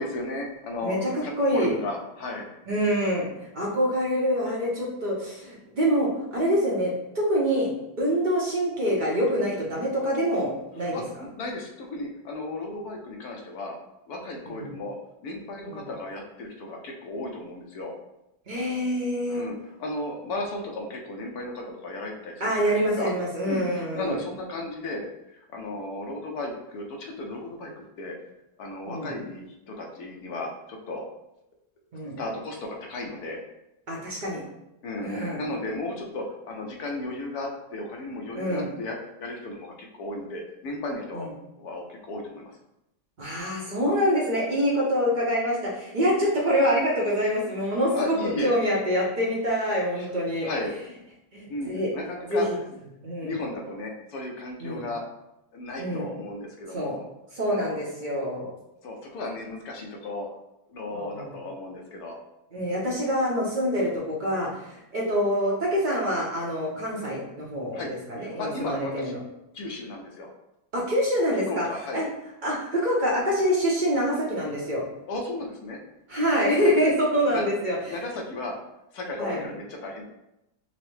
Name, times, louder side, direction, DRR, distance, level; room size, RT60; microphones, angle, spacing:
voice 1, 0.0-1.0 1.2-2.5 10.9-13.7 14.1-15.0 15.2-17.9 19.2-23.1 23.4-25.1 25.3-28.1 28.6-31.0 32.2-33.4 34.8-35.1 35.4-41.3 41.6-42.5 47.9-48.5 50.0-50.1 50.4-50.7 51.5-52.5 53.2-55.0 55.5-57.0 57.5-57.8 58.8-60.3 60.7-62.2 67.7-69.2 69.5-70.3 71.5-72.1 75.1-75.8 76.6-76.8 77.3-77.4 77.9-78.6 78.9-80.0, left 2 dB, 70° left, 1 dB, 1.2 m, -35 dB
voice 2, 0.8-1.7 2.7-3.3 3.5-7.7 8.0-10.9 14.5-14.7 15.7-15.8 18.5-19.4 22.4-24.1 28.9-29.1 31.9-32.2 33.9-34.4 35.0-35.4 38.3-38.7 41.1-41.3 43.2-48.2 48.4-50.5 51.3-51.9 52.3-52.4 53.0-53.3 54.6-54.8 55.8-56.1 56.7-56.9 57.4-58.5 60.9-61.3 62.5-69.2 70.7-71.7 71.9-72.1 72.4-74.8 76.1-78.0 79.2-79.4, equal, 45° right, -3 dB, 0.6 m, -26 dB
5.6 x 2.0 x 3.2 m, 0.88 s
omnidirectional pair, 1.7 m